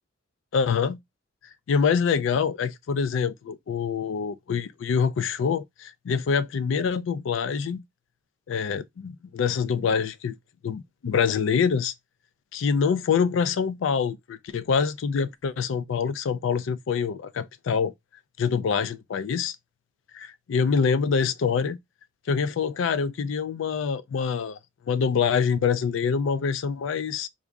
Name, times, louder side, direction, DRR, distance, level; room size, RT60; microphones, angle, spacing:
voice 1, 0.5-1.0 1.7-7.8 8.5-10.4 10.6-11.9 12.5-17.9 18.4-19.6 20.1-21.8 22.3-24.6 24.9-27.3, left 6 dB, 70° left, 0.3 m, -25 dB
3.6 x 2.0 x 3.4 m
head